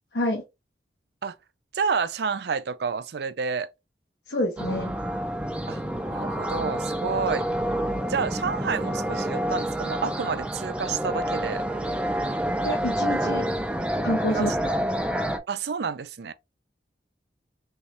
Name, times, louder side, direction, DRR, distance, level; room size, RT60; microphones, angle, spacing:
voice 1, 1.7-3.7 5.7-5.8 6.1-7.5 8.1-11.6 14.3-14.8 15.5-16.3, right 5 dB, 65° right, 0.4 m, -29 dB
voice 2, 4.3-4.9 12.6-13.5 14.0-14.5, left 1 dB, 75° left, 1.0 m, -27 dB
sound 1, 4.6-15.4, right 1 dB, 5° right, 0.4 m, -28 dB
3.5 x 3.1 x 2.9 m
head